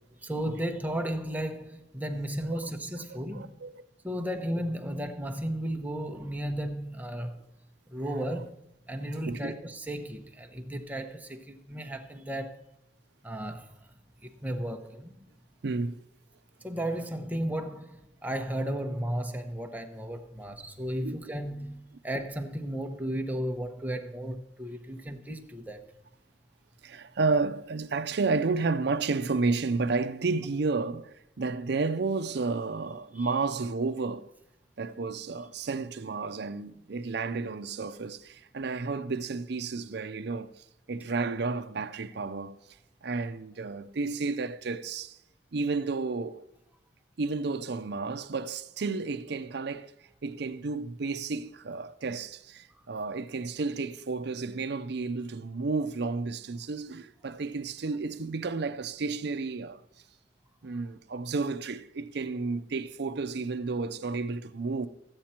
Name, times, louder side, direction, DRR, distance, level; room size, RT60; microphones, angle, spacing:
voice 1, 0.2-3.5 4.0-7.4 7.9-8.5 8.9-12.6 13.2-13.7 14.2-15.1 16.6-25.8 33.1-33.3, equal, 10° right, 1.0 m, -34 dB
voice 2, 3.1-3.8 8.0-8.2 9.3-9.5 15.6-16.0 21.0-21.2 26.8-34.3 34.8-42.6 43.0-45.2 45.5-46.5 47.2-49.9 50.2-59.8 60.6-64.9, right 4 dB, 65° right, 0.6 m, -32 dB
13.5 x 8.8 x 4.4 m
head